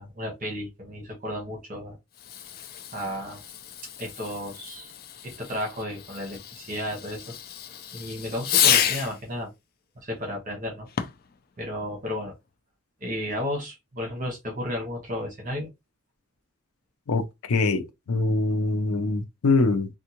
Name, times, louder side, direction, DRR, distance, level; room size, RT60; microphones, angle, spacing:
voice 1, 0.0-2.0 2.9-3.4 4.0-4.9 5.2-7.3 7.9-9.5 10.0-10.9 11.6-12.3 13.0-15.7, left 1 dB, 35° right, 1.1 m, -33 dB
Fireworks, 2.1-9.2 10.9-11.3, left 9 dB, 45° left, 0.4 m, -30 dB
voice 2, 17.5-19.9, left 3 dB, 90° left, 0.6 m, -23 dB
3.5 x 2.3 x 2.9 m
head